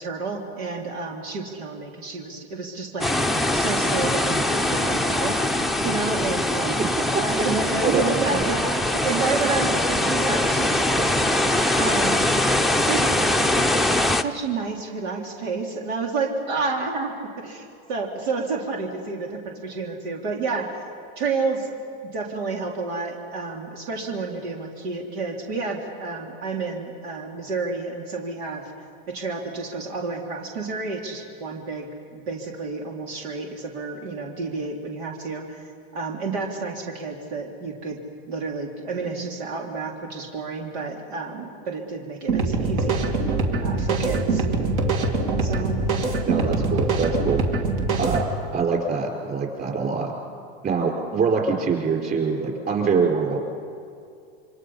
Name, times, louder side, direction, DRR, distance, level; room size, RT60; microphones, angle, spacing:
voice 1, 0.0-3.2 3.5-5.4 5.8-6.8 7.2-11.2 11.7-12.2 12.8-20.8 21.2-21.7 22.0-28.7 29.1-35.7 35.9-38.0 38.3-43.0 43.6-44.4 45.4-45.8, right 4 dB, 85° right, 0 dB, 3.3 m, -30 dB
sound 1, 3.0-14.2, left 1 dB, ahead, 0.6 m, -22 dB
voice 2, 7.8-8.4 46.2-47.5 48.0-48.2 48.5-50.1 50.6-53.4, right 5 dB, 30° right, 1 dB, 4.9 m, -24 dB
sound 2, 42.3-48.3, right 3 dB, 65° right, 3.0 m, -23 dB
27.5 x 25.0 x 5.7 m, 2.4 s
supercardioid pair, 125°, 30 cm